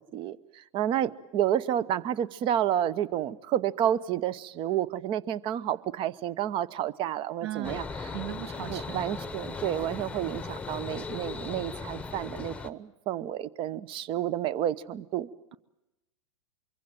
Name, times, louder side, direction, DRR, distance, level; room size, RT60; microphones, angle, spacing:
voice 1, 0.1-7.8 8.7-15.6, right 11 dB, 35° right, 20 dB, 0.8 m, -30 dB
voice 2, 7.4-7.8 8.1-9.0, right 14 dB, 60° right, 15 dB, 1.2 m, -37 dB
sound 1, 7.6-12.7, left 4 dB, 10° left, 1.1 m, -38 dB
24.5 x 24.0 x 7.7 m, 0.97 s
hypercardioid pair, 110°, 16 cm